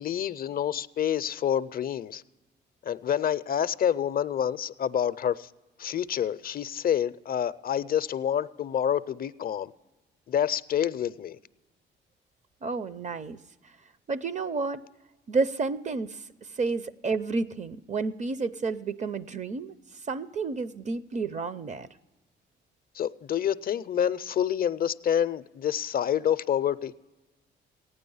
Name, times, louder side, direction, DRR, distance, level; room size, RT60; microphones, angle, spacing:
voice 1, 0.0-2.2 2.8-5.5 5.8-9.7 10.3-11.4 23.0-26.9, left 9 dB, 50° left, 0.4 m, -28 dB
voice 2, 12.6-13.4 14.1-14.8 15.3-16.2 16.6-19.7 20.1-21.9, right 4 dB, 35° right, 0.6 m, -30 dB
14.5 x 9.9 x 5.4 m
cardioid pair, 90°, 20 cm